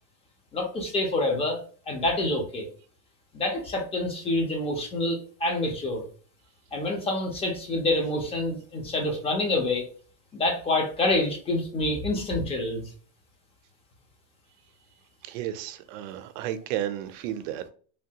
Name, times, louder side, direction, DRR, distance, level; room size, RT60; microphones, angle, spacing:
voice 1, 0.5-1.6 1.9-2.7 3.3-6.0 6.7-9.9 10.3-12.8, left 2 dB, 15° left, 0.4 m, -27 dB
voice 2, 15.2-17.7, right 11 dB, 80° right, 0.5 m, -33 dB
3.2 x 2.2 x 2.7 m
cardioid pair, 160°, 38 cm